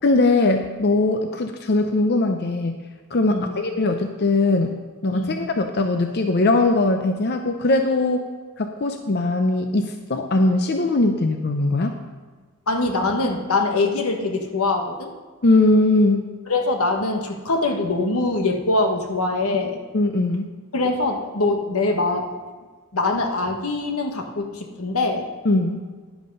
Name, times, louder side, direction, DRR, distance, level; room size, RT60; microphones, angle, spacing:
voice 1, 0.0-2.8 3.1-4.7 5.0-8.2 8.6-11.9 15.4-16.2 19.9-20.5 25.4-25.8, left 2 dB, 50° left, 5 dB, 0.6 m, -20 dB
voice 2, 5.1-5.4 12.7-15.1 16.5-19.8 20.7-22.3 22.9-25.3, left 2 dB, 85° left, 3 dB, 1.3 m, -23 dB
10.5 x 8.0 x 5.4 m, 1.4 s
head